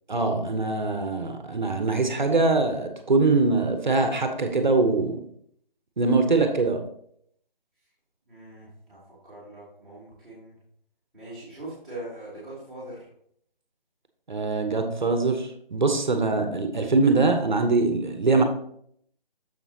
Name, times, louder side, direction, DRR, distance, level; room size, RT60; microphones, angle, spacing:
voice 1, 0.1-5.2 6.0-6.8 14.3-18.4, right 3 dB, 50° right, 6 dB, 0.9 m, -23 dB
voice 2, 8.3-10.6 11.1-13.1, right 1 dB, ahead, -16 dB, 1.8 m, -41 dB
7.1 x 6.7 x 2.8 m, 0.68 s
figure-of-eight pair, 165°, 29 cm